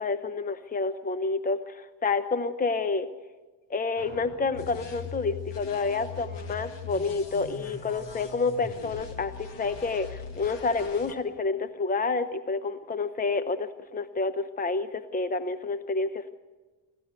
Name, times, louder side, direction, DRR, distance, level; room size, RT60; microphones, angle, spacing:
voice 1, 0.0-3.1 3.7-16.3, left 4 dB, 20° left, 11 dB, 0.9 m, -29 dB
sound 1, 3.9-7.2, left 2 dB, 90° left, 5.1 m, -51 dB
sound 2, 4.5-11.1, left 5 dB, 70° left, 2.3 m, -41 dB
26.0 x 13.5 x 8.3 m, 1.3 s
cardioid pair, 90°, 44 cm